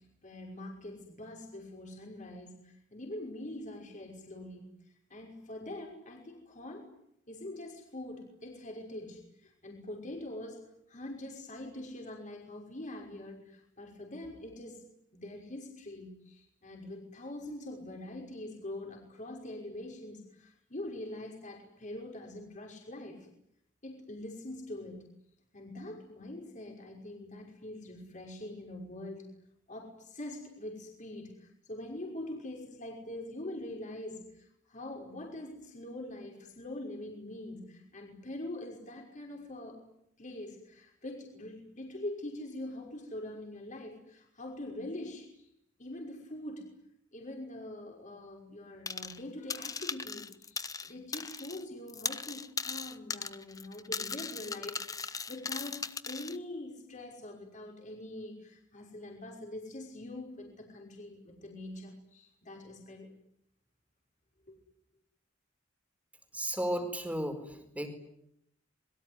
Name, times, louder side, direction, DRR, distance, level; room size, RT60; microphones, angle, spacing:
voice 1, 0.0-4.7 5.1-6.9 7.3-14.8 15.1-23.3 23.8-25.0 25.5-29.3 29.7-39.8 40.2-45.5 45.8-46.7 47.1-63.1 64.5-64.6, left 1 dB, 40° left, 1 dB, 5.8 m, -44 dB
sound 1, 48.9-49.2 49.5-51.6 51.9-56.4, left 5 dB, 20° left, 1.0 m, -38 dB
voice 2, 66.3-67.9, right 1 dB, 10° right, 6 dB, 4.6 m, -34 dB
26.5 x 22.5 x 9.8 m, 0.76 s
head